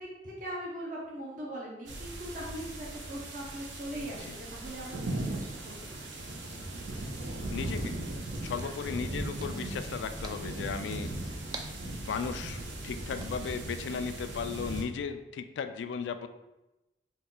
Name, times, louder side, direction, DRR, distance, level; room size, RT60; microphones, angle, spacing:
voice 1, 0.0-6.2, right 1 dB, 45° right, -4 dB, 0.7 m, -41 dB
sound 1, 1.9-14.8, right 1 dB, 85° right, 0.6 m, -38 dB
voice 2, 7.5-8.0 8.4-11.1 11.8-16.3, left 6 dB, 85° left, 10 dB, 0.3 m, -36 dB
sound 2, 8.3-13.9, right 3 dB, 25° right, 0.3 m, -50 dB
3.9 x 2.3 x 3.7 m, 0.99 s
head